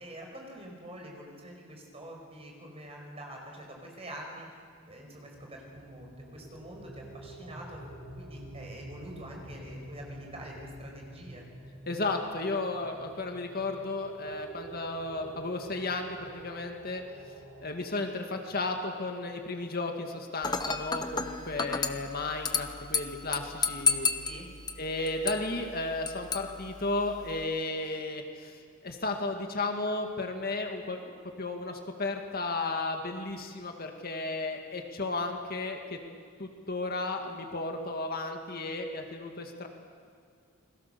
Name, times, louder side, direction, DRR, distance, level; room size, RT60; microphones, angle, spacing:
voice 1, 0.0-7.8 8.2-11.4 21.2-21.8 24.2-24.5, right 1 dB, 30° right, 0 dB, 5.1 m, -46 dB
sound 1, 4.9-19.6, right 2 dB, 90° right, 8.0 m, -48 dB
voice 2, 11.9-17.0 17.6-24.1 24.8-36.0 36.4-39.7, left 2 dB, 45° left, 4 dB, 2.0 m, -34 dB
Dishes pots and pans / Glass, 20.4-27.4, left 4 dB, 20° left, 1.0 m, -33 dB
29.0 x 21.5 x 6.9 m, 2.2 s
head